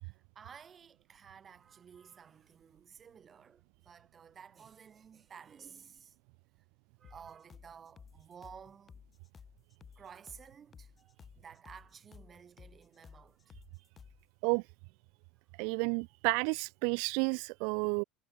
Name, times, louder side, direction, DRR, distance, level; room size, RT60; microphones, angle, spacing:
voice 1, 0.0-6.2 7.0-8.9 10.0-13.5 17.7-17.9, right 7 dB, 20° right, 6.4 m, -54 dB
sound 1, 7.0-14.3, left 6 dB, 20° left, 3.5 m, -56 dB
voice 2, 15.6-18.0, right 40 dB or more, 60° right, 0.4 m, -31 dB
cardioid pair, 170°, 0 cm